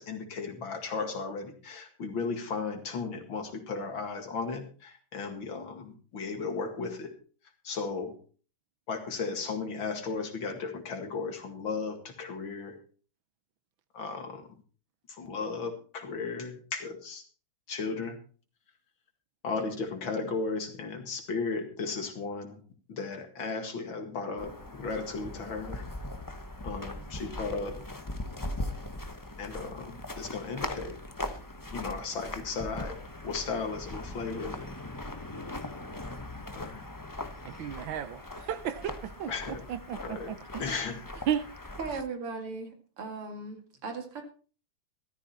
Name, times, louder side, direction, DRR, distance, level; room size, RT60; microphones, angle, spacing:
voice 1, 0.0-7.1 7.6-8.1 8.9-12.7 13.9-14.5 15.1-17.2 17.7-18.2 19.4-22.6 22.9-25.8 26.6-27.8 29.4-31.0 31.7-33.0 33.2-34.7 36.5-36.8 39.3-39.6 40.0-40.3 40.6-41.0, left 4 dB, 65° left, 2.8 m, -35 dB
sound 1, 24.4-42.0, left 1 dB, 20° left, 0.5 m, -40 dB
voice 2, 37.4-39.3 39.7-40.8 41.3-41.4, right 9 dB, 70° right, 1.5 m, -34 dB
voice 3, 41.8-44.2, right 4 dB, 85° right, 3.3 m, -38 dB
13.5 x 13.5 x 4.3 m
omnidirectional pair, 2.4 m